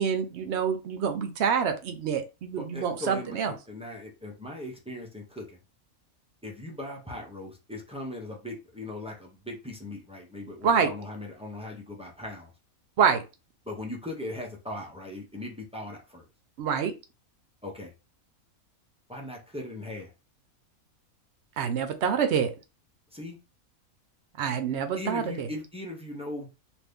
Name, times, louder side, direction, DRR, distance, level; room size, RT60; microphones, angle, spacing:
voice 1, 0.0-3.5 10.6-10.9 13.0-13.2 16.6-16.9 21.6-22.5 24.4-25.5, right 7 dB, 65° right, 0.7 m, -26 dB
voice 2, 2.6-5.6 6.4-12.5 13.6-16.3 17.6-17.9 19.1-20.1 23.1-23.4 24.9-26.5, left 1 dB, 10° right, 0.3 m, -39 dB
2.6 x 2.5 x 3.4 m
omnidirectional pair, 1.5 m